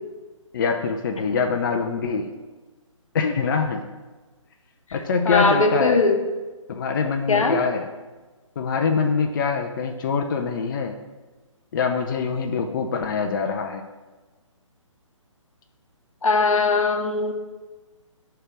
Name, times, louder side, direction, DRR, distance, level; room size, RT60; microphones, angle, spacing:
voice 1, 0.5-2.3 3.1-3.8 4.9-6.0 6.7-7.9 8.6-11.0 11.7-13.8, left 5 dB, 40° left, 4 dB, 0.4 m, -24 dB
voice 2, 5.3-6.2 7.3-7.6 16.2-17.3, left 3 dB, 80° left, 5 dB, 0.8 m, -20 dB
8.8 x 3.3 x 3.2 m, 1.3 s
figure-of-eight pair, 145°, 17 cm